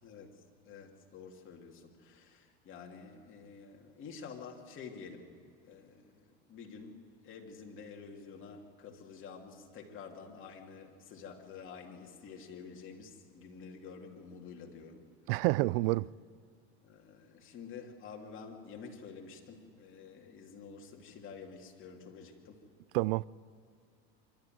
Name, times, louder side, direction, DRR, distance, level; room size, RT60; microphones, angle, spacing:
voice 1, 0.0-0.3 0.6-5.3 5.6-7.0 7.2-15.0 16.8-22.6, left 5 dB, 40° left, 3.0 m, -49 dB
voice 2, 15.3-16.1 22.9-23.2, right 21 dB, 65° right, 0.5 m, -28 dB
25.0 x 13.0 x 9.4 m
supercardioid pair, 120°, 32 cm